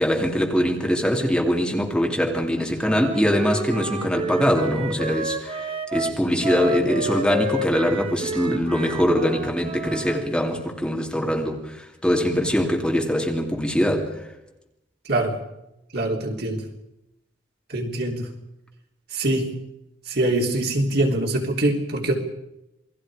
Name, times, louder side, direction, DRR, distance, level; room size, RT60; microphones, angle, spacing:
voice 1, 0.0-14.2, equal, 5° left, 1 dB, 2.7 m, -23 dB
Wind instrument woodwind instrument, 2.8-10.2, right 2 dB, 35° right, 1.5 m, -30 dB
voice 2, 15.9-16.6 17.7-18.3 19.1-19.6 20.1-22.2, right 1 dB, 60° right, 1 dB, 3.5 m, -23 dB
28.0 x 21.0 x 5.0 m, 0.89 s
head